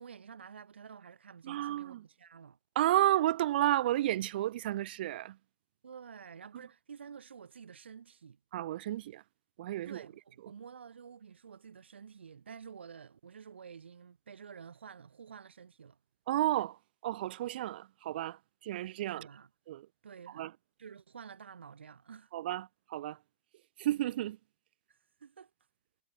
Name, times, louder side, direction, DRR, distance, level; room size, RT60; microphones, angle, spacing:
voice 1, 0.0-2.6 5.8-8.4 9.8-16.0 19.1-19.5 20.0-20.5 20.8-22.3 24.9-25.5, right 6 dB, 90° right, 6.0 m, -50 dB
voice 2, 1.4-2.0 2.8-5.4 8.5-9.2 9.6-10.0 16.3-16.8 17.0-19.3 19.7-19.9 20.3-20.5 22.3-23.2 23.8-24.4, right 14 dB, 60° right, 0.4 m, -31 dB
hypercardioid pair, 130°, 6 cm